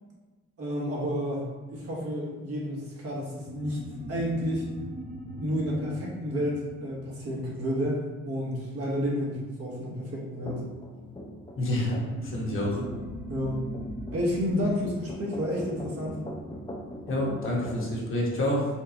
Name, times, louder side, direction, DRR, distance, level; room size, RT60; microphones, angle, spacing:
voice 1, 0.6-3.8 4.1-4.6 5.3-10.6 13.3-13.6 14.1-16.2, equal, 50° right, -4 dB, 1.2 m, -30 dB
sound 1, 3.3-8.2 11.6-16.5, right 1 dB, 30° right, 1.1 m, -41 dB
sound 2, 10.4-18.0, equal, 15° left, 0.6 m, -41 dB
voice 2, 11.6-12.9 17.1-18.7, left 1 dB, 45° left, -4 dB, 1.1 m, -28 dB
4.4 x 2.3 x 2.9 m, 1.2 s
cardioid pair, 90°, 30 cm